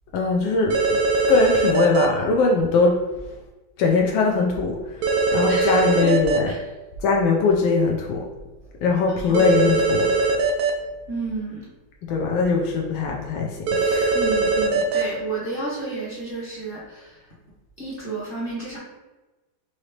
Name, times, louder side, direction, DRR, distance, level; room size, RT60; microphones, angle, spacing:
voice 1, 0.1-1.0 1.3-3.0 3.8-6.5 7.0-8.3 8.8-10.4 12.0-14.1, left 4 dB, 85° left, 0 dB, 1.3 m, -21 dB
sound 1, 0.7-2.1 5.0-6.4 9.3-10.7 13.7-15.0, right 4 dB, 75° right, 0.9 m, -21 dB
voice 2, 5.5-6.1 6.5-6.6 9.1-9.5 11.1-11.7 14.1-17.2 17.8-18.8, right 3 dB, 35° left, -7 dB, 1.0 m, -31 dB
4.9 x 2.8 x 3.2 m, 1.1 s
omnidirectional pair, 2.1 m